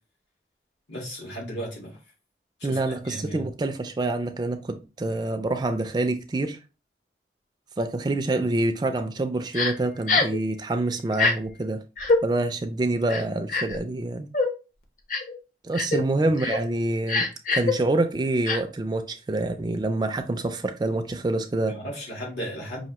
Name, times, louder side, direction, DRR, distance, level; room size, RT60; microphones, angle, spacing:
voice 1, 0.9-2.0 2.6-3.4 15.9-16.1 21.7-22.9, equal, 70° left, 1.6 m, -35 dB
voice 2, 2.6-6.6 7.8-11.8 12.2-14.3 15.6-21.8, right 2 dB, 25° right, 0.3 m, -26 dB
Crying sobbing, 9.5-9.7 10.1-10.4 11.1-11.3 12.0-12.2 13.1-13.8 14.3-14.5 15.1-15.3 15.7-16.0 16.4-16.6 17.1-17.7 18.4-18.6, left 3 dB, 45° left, 0.7 m, -23 dB
5.7 x 2.6 x 2.9 m
head